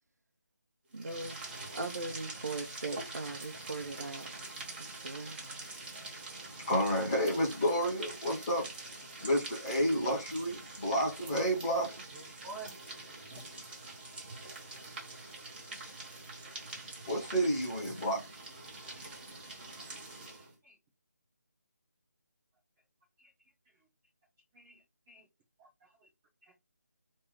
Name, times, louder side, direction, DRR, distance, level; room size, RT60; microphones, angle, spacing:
sound 1, 0.9-20.5, right 2 dB, 35° right, 1.5 m, -45 dB
voice 1, 0.9-1.4 1.7-4.3 4.8-5.6, right 3 dB, 65° right, 1.0 m, -40 dB
voice 2, 6.4-8.7 9.2-12.0 17.1-18.3, equal, 15° left, 1.3 m, -30 dB
voice 3, 12.1-12.7 17.7-17.8 20.6-20.8 23.2-23.3 24.5-25.2 25.6-25.7 26.0-26.1 26.4-26.6, right 3 dB, 10° right, 0.5 m, -49 dB
3.2 x 2.7 x 3.8 m
figure-of-eight pair, 170°, 10 cm